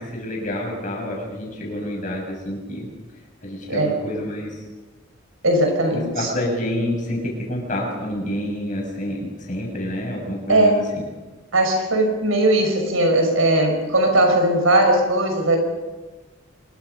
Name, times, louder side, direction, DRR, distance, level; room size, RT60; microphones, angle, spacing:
voice 1, 0.0-2.9 3.4-4.5 5.9-11.0, left 1 dB, 35° left, -1 dB, 7.4 m, -28 dB
voice 2, 5.4-6.3 10.5-10.8 11.5-15.6, right 1 dB, 80° right, 4 dB, 5.7 m, -18 dB
26.0 x 23.0 x 5.5 m, 1.2 s
head